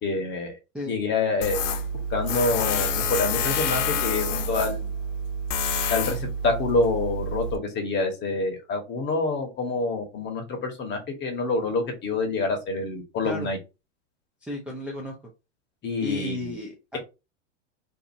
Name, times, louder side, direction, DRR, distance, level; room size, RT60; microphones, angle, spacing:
voice 1, 0.0-0.5 0.9-1.6 2.1-4.9 5.9-13.6 15.8-16.6, left 3 dB, 30° left, 3 dB, 1.0 m, -27 dB
Tools, 1.4-7.6, left 2 dB, 80° left, 0.6 m, -27 dB
voice 2, 14.4-15.1 16.0-17.0, left 2 dB, 5° right, -4 dB, 0.5 m, -33 dB
2.6 x 2.5 x 2.6 m, 0.27 s
hypercardioid pair, 110°, 37 cm